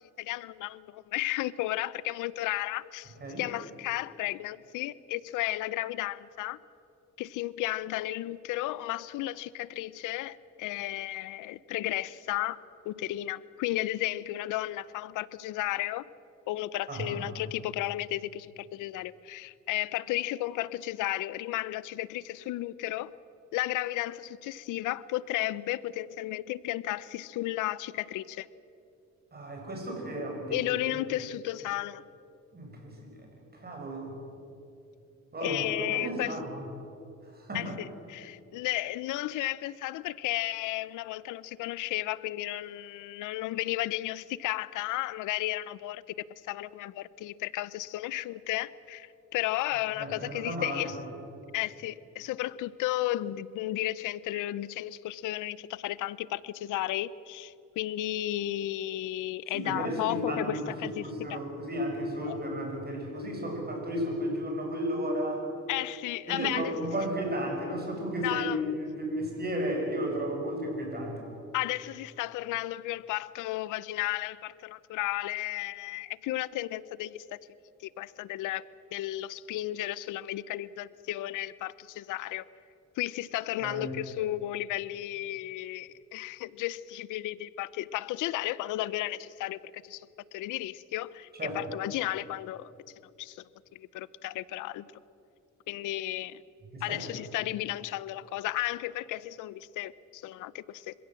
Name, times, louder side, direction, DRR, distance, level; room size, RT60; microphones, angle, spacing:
voice 1, 0.2-6.6 7.2-12.6 12.9-16.0 16.5-23.1 23.5-28.5 30.5-32.0 35.4-36.4 37.5-46.0 46.5-51.0 51.5-61.4 62.3-62.4 65.7-66.7 68.2-68.6 71.5-77.4 77.8-78.6 78.9-82.4 83.0-90.1 90.3-91.3 91.5-92.7 93.2-93.4 93.7-94.8 95.7-96.4 96.8-100.9, left 15 dB, 90° left, 19 dB, 0.6 m, -33 dB
voice 2, 16.9-17.3 29.3-30.6 32.5-34.1 35.3-36.6 37.2-37.8 49.9-50.9 59.5-60.7 61.0-65.4 66.3-71.2 83.6-83.9 91.3-91.7 96.7-97.1, equal, 30° right, 1 dB, 6.7 m, -34 dB
25.5 x 16.5 x 7.6 m, 2.7 s
cardioid pair, 90°, 30 cm